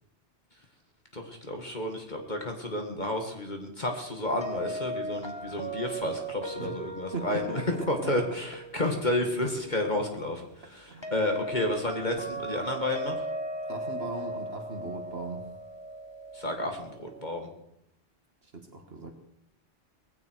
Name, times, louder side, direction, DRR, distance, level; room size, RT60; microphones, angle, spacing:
voice 1, 1.1-13.3 16.3-17.5, left 1 dB, 40° left, 3 dB, 2.0 m, -31 dB
sound 1, 4.4-17.3, right 2 dB, 25° left, 1.7 m, -38 dB
voice 2, 7.1-8.3 10.9-11.1 13.7-15.4 18.4-19.1, right 3 dB, 60° right, 4 dB, 1.8 m, -38 dB
19.0 x 16.0 x 4.7 m, 0.80 s
omnidirectional pair, 1.2 m